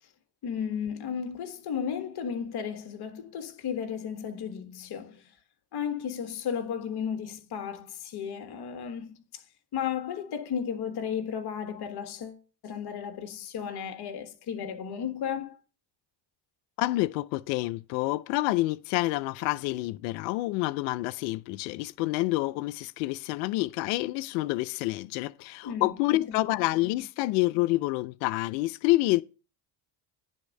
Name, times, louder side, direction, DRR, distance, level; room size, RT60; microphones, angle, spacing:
voice 1, 0.4-5.2 5.7-9.2 9.7-15.6 25.6-25.9, left 8 dB, 50° left, 1.4 m, -34 dB
voice 2, 16.8-29.2, left 19 dB, 85° left, 0.6 m, -28 dB
10.0 x 3.5 x 6.3 m
supercardioid pair, 80°, 50 cm